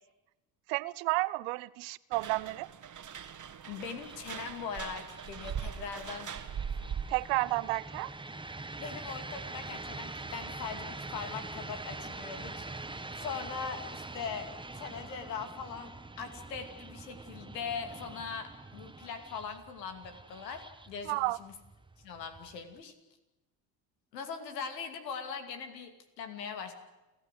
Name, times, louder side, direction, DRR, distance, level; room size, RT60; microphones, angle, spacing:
voice 1, 0.7-2.7 7.1-8.1 21.0-21.4, right 22 dB, 65° right, 0.9 m, -31 dB
sound 1, 2.1-7.3, right 7 dB, 40° right, 1.7 m, -40 dB
voice 2, 3.7-6.3 8.8-21.5 22.0-22.9 24.1-26.7, left 6 dB, 90° left, 2.7 m, -41 dB
sound 2, 3.8-22.8, right 2 dB, 10° right, 1.2 m, -45 dB
29.5 x 14.0 x 8.3 m
hypercardioid pair, 65°, 48 cm